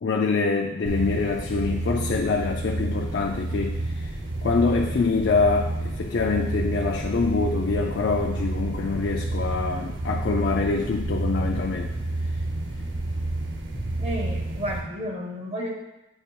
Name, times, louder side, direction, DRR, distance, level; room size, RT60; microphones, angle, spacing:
voice 1, 0.0-4.1 4.4-11.9, left 4 dB, 55° left, 2 dB, 0.4 m, -25 dB
sound 1, 0.9-14.8, right 2 dB, 60° right, 0.8 m, -30 dB
voice 2, 14.0-15.7, equal, 30° right, 2 dB, 0.6 m, -31 dB
8.2 x 2.9 x 4.5 m, 0.97 s
head